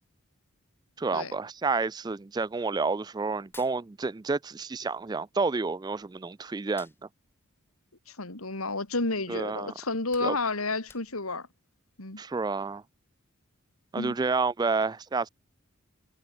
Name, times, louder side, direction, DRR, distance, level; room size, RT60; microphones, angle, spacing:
voice 1, 1.0-6.9 9.3-9.7 10.2-10.4 12.2-12.8 13.9-15.3, right 4 dB, 20° right, 0.3 m, -29 dB
Hands, 3.4-4.6 4.9-6.2 6.6-8.9 9.3-9.5 9.8-11.5, left 3 dB, 10° left, 6.4 m, -55 dB
voice 2, 8.1-11.5 12.0-12.2 14.0-14.2, left 3 dB, 90° left, 3.6 m, -31 dB
head